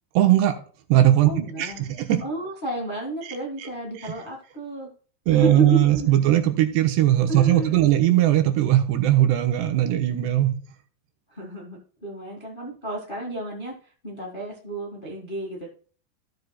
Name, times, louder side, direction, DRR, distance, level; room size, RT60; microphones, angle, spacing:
voice 1, 0.1-0.5 0.9-1.3 1.6-1.7 2.0-2.2 4.0-4.1 5.3-10.6, right 13 dB, 85° right, 4 dB, 3.3 m, -19 dB
voice 2, 1.2-4.9 5.3-6.3 7.3-7.8 11.3-13.7 14.0-15.7, right 1 dB, 30° left, -1 dB, 0.8 m, -31 dB
15.0 x 7.4 x 2.3 m, 0.41 s
omnidirectional pair, 4.7 m